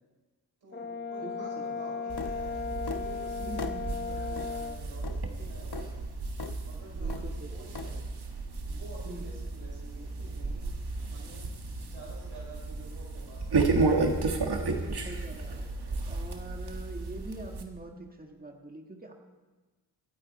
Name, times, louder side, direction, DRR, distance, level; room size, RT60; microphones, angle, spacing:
voice 1, 0.6-3.7 4.0-6.0 6.6-8.0 8.6-10.7 11.1-11.4 11.8-13.9, right 1 dB, 80° right, -4 dB, 5.8 m, -49 dB
Brass instrument, 0.7-4.8, left 5 dB, 25° left, 0.9 m, -36 dB
voice 2, 1.2-1.8 3.4-4.0 7.0-7.7 9.0-9.3 14.6-15.7 16.1-19.1, right 1 dB, 20° right, 2 dB, 1.6 m, -44 dB
sound 1, 2.1-17.6, right 3 dB, 65° right, 1.7 m, -33 dB
sound 2, 2.2-2.4 2.9-3.1 3.6-3.8 4.4-4.5 5.0-5.2 5.7-5.9 6.4-6.6 7.1-7.3 7.7-7.9, left 5 dB, 65° left, 1.1 m, -38 dB
24.5 x 8.8 x 4.2 m, 1.3 s
cardioid pair, 45°, 42 cm